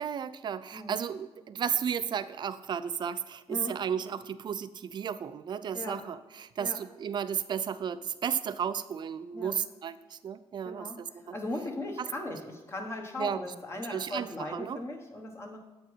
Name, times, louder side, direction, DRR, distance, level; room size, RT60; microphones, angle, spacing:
voice 1, 0.0-11.3 12.0-12.1 13.2-13.4 13.9-14.8, right 8 dB, 40° right, 14 dB, 0.4 m, -34 dB
voice 2, 5.7-6.1 6.6-6.8 9.3-9.6 10.6-11.0 11.3-15.6, left 1 dB, 25° left, 2 dB, 1.0 m, -38 dB
8.4 x 4.5 x 6.2 m, 1.2 s
cardioid pair, 150°, 11 cm